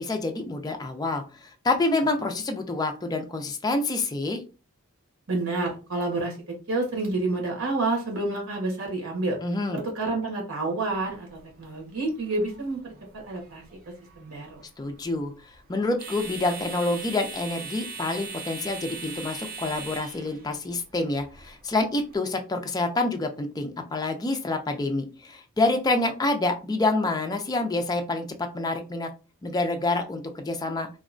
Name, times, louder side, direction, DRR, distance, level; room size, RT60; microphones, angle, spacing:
voice 1, 0.0-4.4 9.4-9.8 14.8-29.1 29.4-30.9, left 2 dB, 20° left, 5 dB, 0.3 m, -27 dB
voice 2, 5.3-6.4 6.7-9.4 9.7-13.6 14.2-14.6, right 2 dB, 85° right, 1 dB, 1.2 m, -29 dB
sound 1, 10.8-22.2, right 4 dB, 45° right, 0.5 m, -41 dB
2.8 x 2.1 x 2.5 m, 0.33 s
head